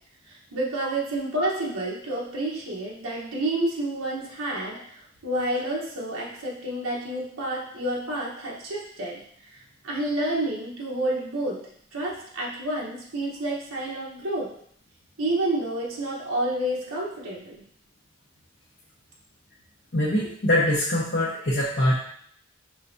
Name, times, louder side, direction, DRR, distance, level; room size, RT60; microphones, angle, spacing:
voice 1, 0.3-9.2 9.5-11.6 11.9-14.5 15.2-17.6, right 1 dB, 85° right, -4 dB, 1.1 m, -29 dB
voice 2, 19.9-21.9, left 1 dB, 50° left, -6 dB, 0.9 m, -23 dB
5.6 x 3.4 x 2.7 m, 0.64 s
head